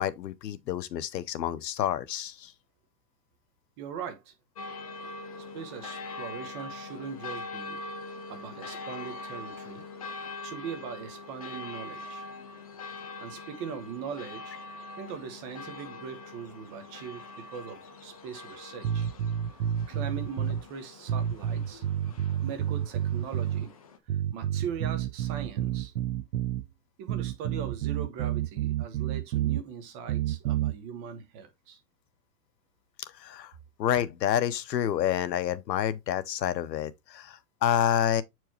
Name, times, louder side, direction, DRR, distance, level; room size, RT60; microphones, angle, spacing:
voice 1, 0.0-2.5 33.2-33.5 33.8-38.2, left 10 dB, 85° left, 1.0 m, -28 dB
voice 2, 3.8-4.3 5.5-7.8 8.3-9.8 10.2-12.2 13.2-14.6 15.0-19.1 19.9-21.8 22.4-23.7 24.3-25.9 27.0-31.8, right 7 dB, 25° right, 1.1 m, -40 dB
sound 1, 4.6-24.0, left 3 dB, 25° left, 0.4 m, -43 dB
sound 2, 18.8-20.6 21.1-23.7 24.1-26.7 27.1-29.6 30.1-30.7, right 11 dB, 85° right, 0.6 m, -29 dB
7.9 x 4.6 x 2.9 m
supercardioid pair, 165°, 48 cm